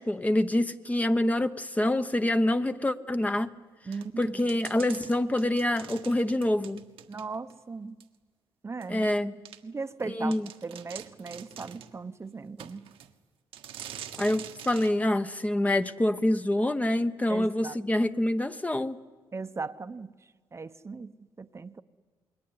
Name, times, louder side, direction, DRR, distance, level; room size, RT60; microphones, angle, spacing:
voice 1, 0.0-3.5 4.2-6.8 8.9-9.3 10.1-10.5 14.2-19.0, left 1 dB, 15° left, 9 dB, 1.0 m, -26 dB
voice 2, 3.9-4.5 7.1-7.9 8.6-9.1 9.6-10.3 10.6-12.9 17.3-17.7 19.3-20.1 20.5-21.1 21.4-21.8, right 4 dB, 30° right, 10 dB, 0.9 m, -38 dB
sound 1, 3.9-7.6 8.0-8.1 8.8-8.9 9.4-9.6 10.0-10.1 10.3-11.9 12.6-13.1 13.5-14.9, right 9 dB, 85° right, 1.6 m, -45 dB
28.0 x 21.0 x 9.6 m, 1.4 s
cardioid pair, 85°, 9 cm